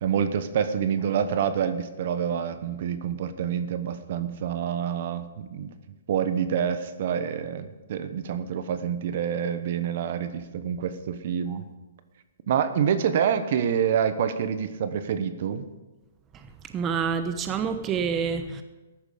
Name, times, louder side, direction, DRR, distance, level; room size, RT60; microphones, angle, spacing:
voice 1, 0.0-5.7 6.1-11.7 12.5-15.6, right 8 dB, 55° right, 11 dB, 1.0 m, -27 dB
voice 2, 16.3-18.6, right 6 dB, 20° right, 8 dB, 0.9 m, -28 dB
14.0 x 11.0 x 5.1 m, 1.1 s
hypercardioid pair, 145°, 0 cm